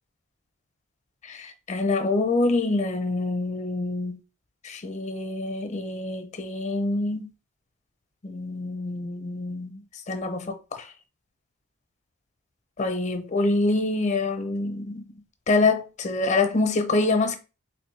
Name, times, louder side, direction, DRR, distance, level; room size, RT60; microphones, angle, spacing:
voice 1, 1.3-4.2 4.6-7.3 8.2-9.8 10.1-10.9 12.8-15.1 15.5-17.4, left 3 dB, 35° left, 0.6 m, -26 dB
4.0 x 3.0 x 3.2 m
head